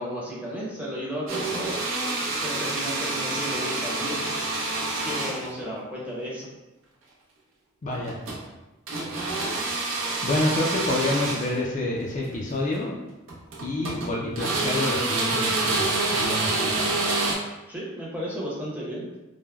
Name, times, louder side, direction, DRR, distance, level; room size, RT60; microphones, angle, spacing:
voice 1, 0.0-1.8 2.4-4.4 5.0-6.5 17.7-19.0, equal, 5° right, -6 dB, 0.6 m, -33 dB
sound 1, 1.3-5.6 7.9-8.5 8.9-11.5 12.6-12.8 13.3-14.1 14.4-17.3, right 3 dB, 85° right, 0.6 m, -27 dB
voice 2, 7.8-8.2 10.2-13.0 13.6-16.9, left 2 dB, 35° left, -2 dB, 0.3 m, -28 dB
3.2 x 2.0 x 2.3 m, 1.0 s
head